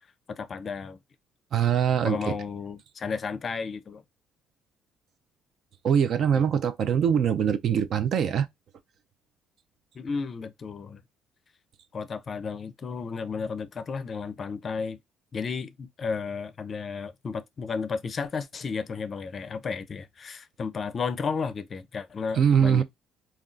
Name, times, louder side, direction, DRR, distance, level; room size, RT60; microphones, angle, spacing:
voice 1, 0.3-1.0 2.0-4.0 6.3-6.4 9.9-11.0 11.9-15.0 15.3-22.8, left 5 dB, 40° left, 0.4 m, -33 dB
voice 2, 1.5-2.4 5.8-8.5 22.3-22.8, right 8 dB, 60° right, 0.4 m, -23 dB
3.6 x 2.3 x 2.4 m
cardioid pair, 110°, 0 cm